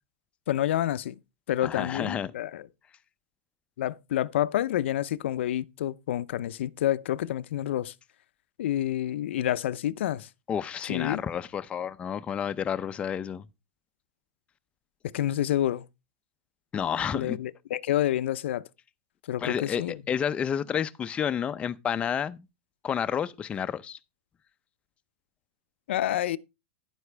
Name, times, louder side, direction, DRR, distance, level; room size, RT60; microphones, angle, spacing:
voice 1, 0.5-1.2 1.5-2.7 3.8-7.9 8.6-10.3 10.8-11.2 15.1-15.9 17.1-18.6 19.3-19.9 25.9-26.4, left 12 dB, 80° left, 0.6 m, -28 dB
voice 2, 1.6-2.3 10.5-13.5 16.7-17.4 19.4-22.4 22.8-24.0, left 8 dB, 20° left, 0.5 m, -30 dB
10.5 x 9.4 x 3.3 m
supercardioid pair, 145°, 6 cm